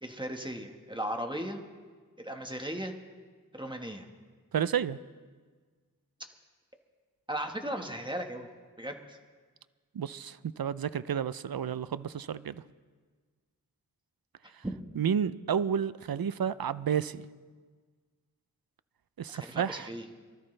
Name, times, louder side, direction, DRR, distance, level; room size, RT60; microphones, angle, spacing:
voice 1, 0.0-1.6 2.2-2.9 3.5-4.1 7.3-8.5 8.8-9.2 14.6-14.7 19.3-20.1, right 1 dB, 15° right, 3 dB, 1.4 m, -36 dB
voice 2, 4.5-5.0 9.9-12.5 15.0-17.3 19.2-19.9, right 8 dB, 80° right, 16 dB, 0.5 m, -31 dB
23.5 x 13.5 x 3.3 m, 1.5 s
wide cardioid pair, 45°, 35 cm